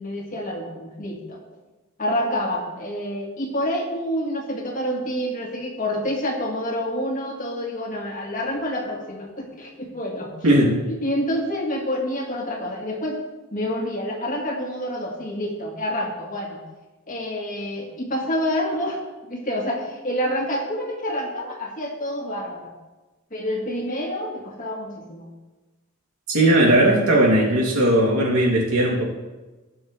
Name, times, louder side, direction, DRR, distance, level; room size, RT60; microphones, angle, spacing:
voice 1, 0.0-1.4 2.0-10.3 10.9-13.2 13.5-16.6 17.1-19.0 19.3-22.7 23.3-25.3, equal, 40° left, 0 dB, 2.0 m, -28 dB
voice 2, 10.4-10.8 26.3-29.0, right 1 dB, 85° right, -4 dB, 3.0 m, -18 dB
17.0 x 6.3 x 3.4 m, 1.1 s
head